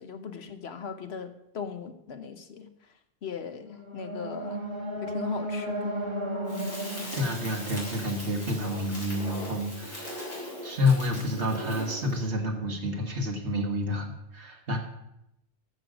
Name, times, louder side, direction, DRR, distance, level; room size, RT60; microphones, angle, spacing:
voice 1, 0.0-2.9 3.2-4.6 5.0-6.0, left 6 dB, 70° left, 8 dB, 1.1 m, -39 dB
sound 1, 3.6-8.7, equal, 25° right, 1.8 m, -35 dB
Crackle, 6.5-12.2, equal, 45° left, 4.9 m, -39 dB
voice 2, 6.8-14.8, left 2 dB, 75° right, 3 dB, 1.9 m, -29 dB
14.0 x 6.5 x 5.1 m, 0.84 s
omnidirectional pair, 1.1 m